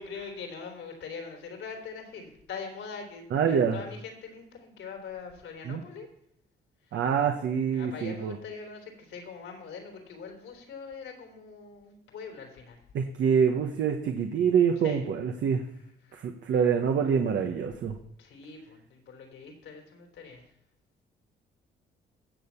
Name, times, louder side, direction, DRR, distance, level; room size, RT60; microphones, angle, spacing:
voice 1, 0.0-6.1 7.7-12.8 14.8-15.1 16.0-16.2 18.2-20.4, left 5 dB, 80° left, 3 dB, 3.5 m, -42 dB
voice 2, 3.3-3.8 5.6-5.8 6.9-8.4 12.9-15.6 16.1-17.9, right 7 dB, 65° right, 4 dB, 1.2 m, -26 dB
16.5 x 7.0 x 5.8 m, 0.74 s
cardioid pair, 90°, 20 cm